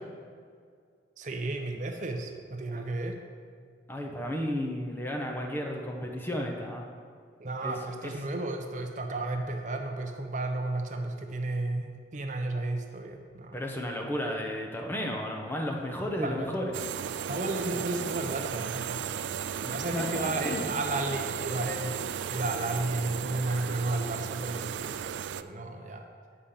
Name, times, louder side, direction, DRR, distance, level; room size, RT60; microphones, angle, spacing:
voice 1, 1.2-3.2 7.4-13.6 16.2-16.5 17.3-19.0 19.6-24.9 25.4-26.1, right 2 dB, 45° right, 3 dB, 0.6 m, -33 dB
voice 2, 3.9-6.8 7.6-7.7 8.0-8.1 13.5-16.7 19.6-20.7, equal, 10° left, 1 dB, 0.8 m, -33 dB
sound 1, 16.7-25.4, right 8 dB, 90° right, 0.3 m, -35 dB
8.5 x 5.0 x 5.8 m, 2.1 s
head